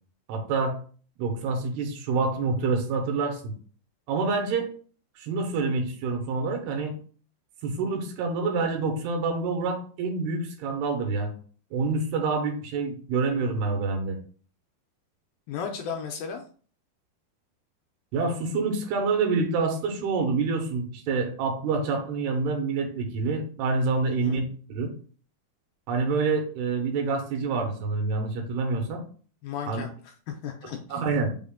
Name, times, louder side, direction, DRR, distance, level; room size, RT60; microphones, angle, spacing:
voice 1, 0.3-0.8 1.2-3.5 4.1-4.7 5.2-7.0 7.6-11.3 11.7-14.2 18.1-24.9 25.9-29.0 29.7-29.8 30.9-31.3, right 4 dB, 85° right, 3 dB, 3.0 m, -27 dB
voice 2, 15.5-16.4 24.2-24.4 29.4-29.9 30.3-31.0, left 7 dB, 80° left, 2 dB, 2.1 m, -34 dB
6.2 x 2.1 x 3.7 m, 0.42 s
omnidirectional pair, 4.5 m